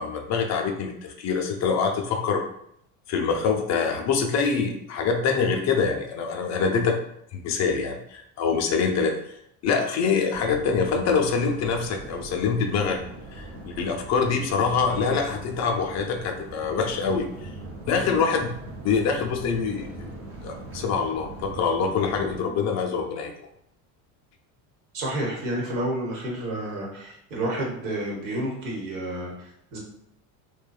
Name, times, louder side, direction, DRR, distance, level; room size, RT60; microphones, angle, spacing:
voice 1, 0.0-2.4 3.1-7.0 7.3-9.2 9.6-13.0 13.3-17.5 17.9-18.5 18.8-20.1 20.4-23.3, left 5 dB, 40° left, 3 dB, 0.4 m, -25 dB
sound 1, 10.3-22.4, right 2 dB, 35° right, 0.6 m, -41 dB
voice 2, 24.9-29.8, right 1 dB, 90° right, -2 dB, 1.1 m, -30 dB
2.7 x 2.1 x 2.3 m, 0.74 s
supercardioid pair, 110°, 42 cm